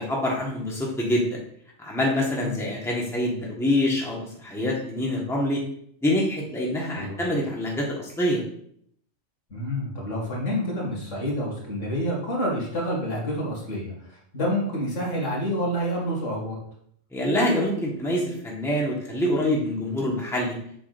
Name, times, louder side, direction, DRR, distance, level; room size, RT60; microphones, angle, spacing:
voice 1, 0.0-1.4 1.8-5.6 6.0-8.4 17.1-20.6, left 1 dB, ahead, -3 dB, 1.3 m, -25 dB
voice 2, 9.5-16.6, equal, 75° left, -4 dB, 2.5 m, -28 dB
7.6 x 6.0 x 2.5 m, 0.67 s
omnidirectional pair, 1.3 m